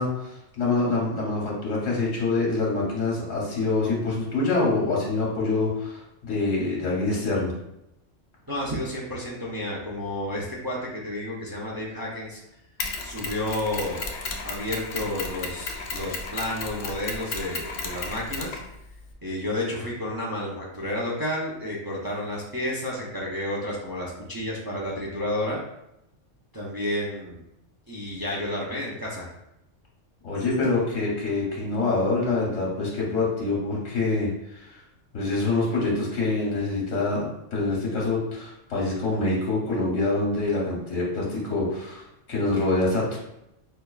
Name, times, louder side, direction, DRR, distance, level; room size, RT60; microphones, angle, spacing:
voice 1, 0.0-7.5 30.2-34.8 35.1-43.2, left 3 dB, 90° left, -3 dB, 1.2 m, -26 dB
voice 2, 8.5-12.4 13.0-14.1 14.4-18.6 19.2-25.6 26.5-27.4 27.9-29.3 30.3-30.4, left 1 dB, 35° right, -5 dB, 0.3 m, -31 dB
Mechanisms, 12.8-19.1, left 3 dB, 65° left, 0.8 m, -34 dB
5.2 x 2.2 x 2.3 m, 0.86 s
omnidirectional pair, 1.3 m